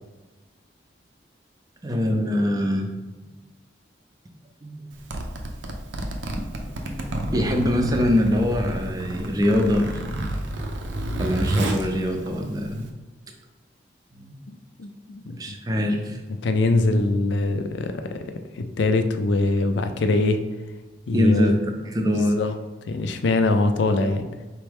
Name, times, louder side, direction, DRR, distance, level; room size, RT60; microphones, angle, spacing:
voice 1, 1.8-2.9 4.6-4.9 6.6-7.1 7.3-10.0 11.2-12.8 14.1-14.3 15.4-16.2 21.1-21.5 21.8-22.4, left 1 dB, 20° right, 3 dB, 0.5 m, -23 dB
Zipper (clothing), 4.9-12.9, right 1 dB, 75° right, 0.5 m, -30 dB
voice 2, 14.5-15.6 16.4-18.2 18.6-20.4 21.1-21.6 22.1-22.5 22.9-24.3, left 2 dB, 75° left, 8 dB, 0.4 m, -23 dB
4.4 x 3.5 x 3.4 m, 1.2 s
head